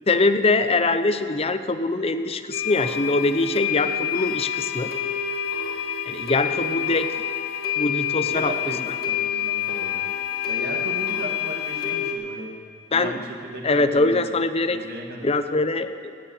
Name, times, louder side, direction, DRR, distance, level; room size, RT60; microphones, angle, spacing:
voice 1, 0.1-4.9 6.1-7.1 7.8-8.5 12.9-13.2 13.6-14.8 15.2-16.1, left 2 dB, 30° left, 10 dB, 0.6 m, -23 dB
sound 1, 2.5-12.1, left 9 dB, 55° left, 1.8 m, -27 dB
voice 2, 8.2-10.1 10.5-12.6 12.9-14.2 14.7-15.3, right 1 dB, 55° right, 1 dB, 1.9 m, -36 dB
18.0 x 7.1 x 8.5 m, 2.3 s
head